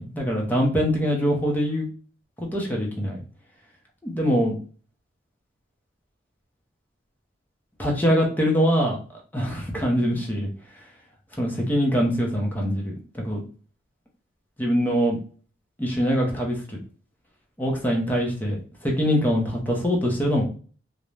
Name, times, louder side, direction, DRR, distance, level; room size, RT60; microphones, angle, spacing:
voice 1, 0.0-1.9 2.4-3.2 4.0-4.6 7.8-9.0 9.3-10.5 11.4-13.4 14.6-15.2 15.8-16.8 17.6-18.6 18.8-20.4, equal, 10° left, -1 dB, 0.6 m, -23 dB
2.5 x 2.1 x 3.1 m, 0.41 s
head